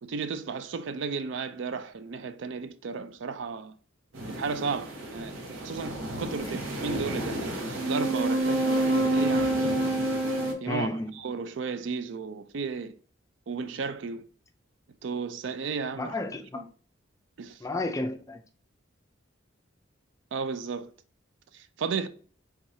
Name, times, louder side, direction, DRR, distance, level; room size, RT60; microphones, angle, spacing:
voice 1, 0.0-3.7 4.3-9.6 10.6-10.9 11.2-12.9 13.5-14.2 15.0-16.1 16.5-16.6 17.4-17.6 20.3-20.9 21.5-22.1, right 5 dB, 65° right, 0.4 m, -34 dB
sound 1, 4.1-10.5, right 1 dB, 85° right, 1.1 m, -28 dB
voice 2, 10.7-11.1 16.0-16.6 17.6-18.4, left 2 dB, 15° left, 0.3 m, -32 dB
4.6 x 3.6 x 2.7 m
head